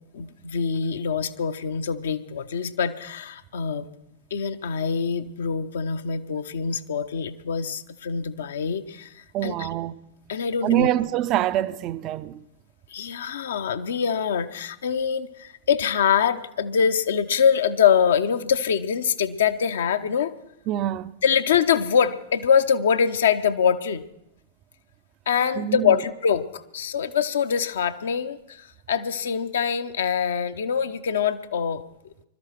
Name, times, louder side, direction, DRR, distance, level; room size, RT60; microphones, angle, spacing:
voice 1, 0.1-3.9 4.3-9.1 9.4-9.7 10.3-10.9 12.9-20.3 21.2-24.0 25.3-31.8, left 7 dB, 65° left, 0.7 m, -24 dB
voice 2, 9.3-10.0 10.6-12.4 20.7-21.1 25.5-26.0, right 13 dB, 40° right, 0.5 m, -25 dB
21.5 x 13.0 x 4.5 m
figure-of-eight pair, 90°, 0 cm